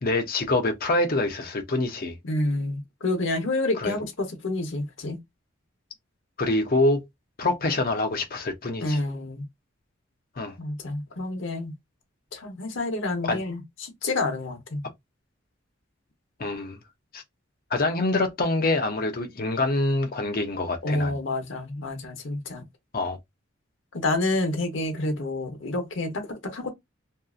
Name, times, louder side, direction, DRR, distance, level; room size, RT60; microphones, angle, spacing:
voice 1, 0.0-2.2 3.8-4.0 6.4-7.0 7.4-9.0 10.4-10.6 13.3-13.4 16.4-16.8 17.1-17.2 17.7-21.1 22.9-23.2, left 2 dB, 45° left, 0.6 m, -25 dB
voice 2, 2.2-5.2 8.8-9.4 10.6-11.7 12.3-14.8 20.8-22.6 23.9-26.7, left 2 dB, 70° left, 0.9 m, -28 dB
2.6 x 2.4 x 2.4 m
head